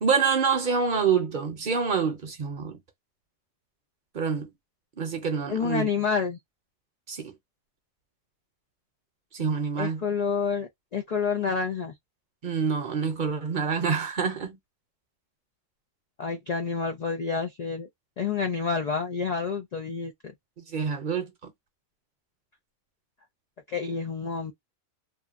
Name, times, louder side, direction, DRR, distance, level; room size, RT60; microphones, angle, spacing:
voice 1, 0.0-2.8 4.1-4.5 5.0-5.9 7.1-7.3 9.3-10.0 12.4-14.6 20.7-21.5, right 6 dB, 50° right, 0.7 m, -27 dB
voice 2, 5.5-6.4 9.8-11.9 16.2-17.9 18.2-20.1 23.7-24.5, left 5 dB, 85° left, 0.3 m, -28 dB
2.8 x 2.1 x 2.4 m
omnidirectional pair, 1.3 m